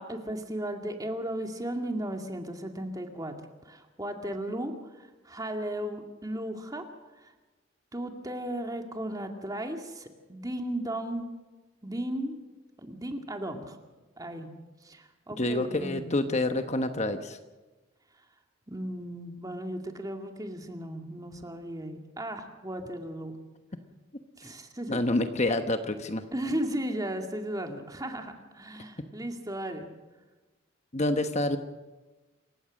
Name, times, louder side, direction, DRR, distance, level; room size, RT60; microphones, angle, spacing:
voice 1, 0.0-3.3 3.6-6.8 7.2-7.3 7.9-11.2 11.8-12.4 12.8-13.8 14.2-14.5 14.8-16.1 18.7-23.3 24.4-25.0 26.3-29.9, right 1 dB, 20° right, 4 dB, 2.2 m, -35 dB
voice 2, 15.4-17.4 24.9-26.2 30.9-31.6, left 2 dB, 35° left, 7 dB, 1.1 m, -27 dB
27.5 x 16.0 x 6.4 m, 1.2 s
head